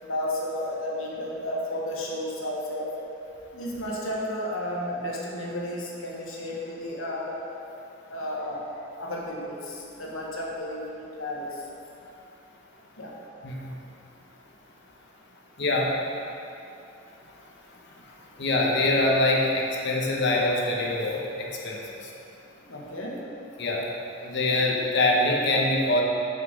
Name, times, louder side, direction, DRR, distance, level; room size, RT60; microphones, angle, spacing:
voice 1, 0.0-2.9 3.5-7.4 8.1-8.7 9.0-11.6 13.0-13.1 22.7-23.2, left 1 dB, 75° left, -3 dB, 1.4 m, -32 dB
voice 2, 15.6-15.9 18.1-22.1 23.6-23.9 24.2-26.0, left 2 dB, 55° left, -2 dB, 1.0 m, -24 dB
5.9 x 5.8 x 6.3 m, 2.8 s
head